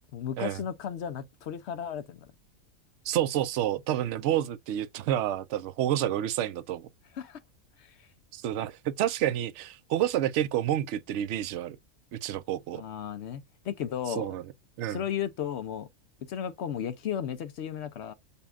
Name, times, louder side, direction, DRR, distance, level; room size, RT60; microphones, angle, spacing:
voice 1, 0.1-2.2 7.1-7.4 7.8-8.1 12.7-14.3 14.9-15.9 16.3-18.1, left 9 dB, 65° left, 0.8 m, -34 dB
voice 2, 3.1-6.9 8.3-11.8 12.1-12.8 14.2-14.4 14.8-15.0, right 12 dB, 65° right, 0.8 m, -29 dB
6.8 x 2.3 x 2.4 m
omnidirectional pair, 1.4 m